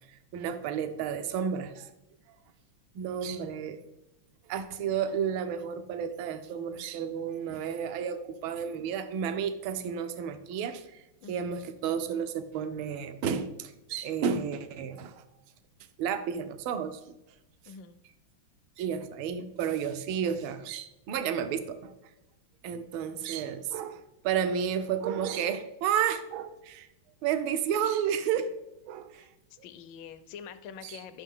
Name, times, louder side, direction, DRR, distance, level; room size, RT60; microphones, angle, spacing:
voice 1, 0.3-1.9 2.9-3.8 4.5-11.0 11.3-15.1 16.0-17.0 18.8-21.9 22.6-26.9 27.2-28.5 28.9-29.3 30.8-31.0, right 8 dB, 75° right, 10 dB, 1.5 m, -32 dB
voice 2, 11.2-11.5 17.6-18.0 29.1-31.2, left 7 dB, 70° left, 9 dB, 1.3 m, -46 dB
10.5 x 6.1 x 3.6 m, 0.93 s
omnidirectional pair, 2.3 m